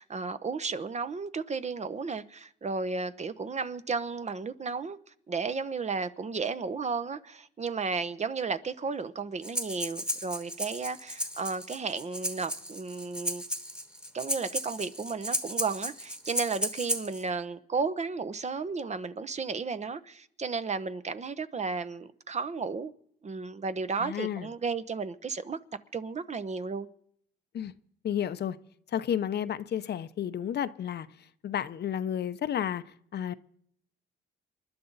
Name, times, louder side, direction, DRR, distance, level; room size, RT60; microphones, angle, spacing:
voice 1, 0.0-5.0 5.3-13.4 14.1-22.9 23.2-25.6 25.9-26.9, right 4 dB, 35° right, 0.9 m, -33 dB
Breathing, 9.4-17.2, equal, 5° right, 1.5 m, -34 dB
voice 2, 24.0-24.5 27.5-27.7 28.0-28.6 28.9-31.1 31.4-32.8 33.1-33.3, left 9 dB, 55° left, 0.8 m, -31 dB
28.0 x 11.5 x 4.0 m
cardioid pair, 90°, 20 cm